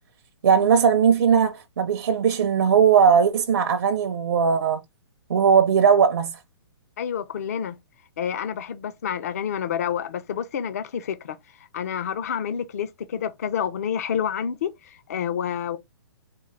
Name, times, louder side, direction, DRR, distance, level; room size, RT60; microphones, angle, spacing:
voice 1, 0.4-4.8 5.3-6.4, right 7 dB, 55° right, 0.5 m, -19 dB
voice 2, 7.0-7.8 8.2-11.4 11.7-15.8, left 8 dB, 35° left, 0.4 m, -28 dB
3.7 x 2.4 x 3.2 m
hypercardioid pair, 170°, 14 cm